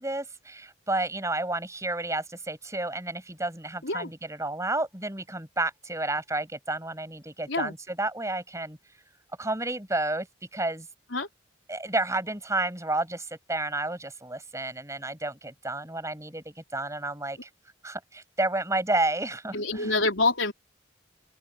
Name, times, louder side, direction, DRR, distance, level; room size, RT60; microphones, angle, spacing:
voice 1, 0.0-8.8 9.4-10.3 10.5-10.9 11.7-17.5 17.8-20.0, right 2 dB, 15° right, 7.9 m, -31 dB
voice 2, 19.5-20.5, left 3 dB, 85° left, 4.1 m, -26 dB
open air
head